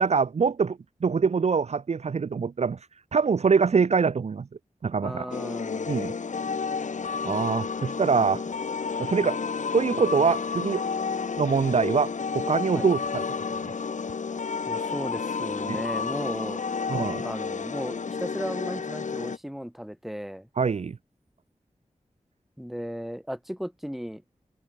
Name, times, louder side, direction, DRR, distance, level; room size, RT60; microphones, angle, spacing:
voice 1, 0.0-2.8 3.1-4.5 4.8-5.3 5.9-6.1 7.2-8.4 9.0-9.4 9.7-10.8 11.4-13.2 13.6-13.7 15.7-15.8 16.9-17.2 20.6-21.0, right 5 dB, 60° right, 0.6 m, -24 dB
voice 2, 5.0-5.9 12.7-12.9 14.7-16.6 17.2-20.5 22.6-24.2, equal, ahead, 2.2 m, -35 dB
sound 1, 5.3-19.4, left 5 dB, 75° left, 2.0 m, -31 dB
cardioid pair, 50°, 13 cm